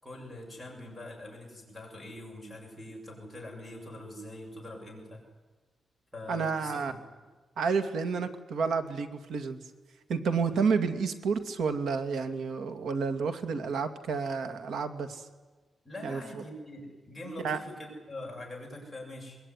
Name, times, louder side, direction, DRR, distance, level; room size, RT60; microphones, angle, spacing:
voice 1, 0.0-5.2 6.1-7.0 15.8-19.4, left 1 dB, ahead, -3 dB, 7.6 m, -43 dB
voice 2, 6.3-6.9 7.6-9.6 10.1-15.3 16.0-16.4 17.4-17.6, right 5 dB, 80° right, 9 dB, 2.3 m, -30 dB
24.5 x 21.0 x 9.9 m, 1.3 s
wide cardioid pair, 160°, 0 cm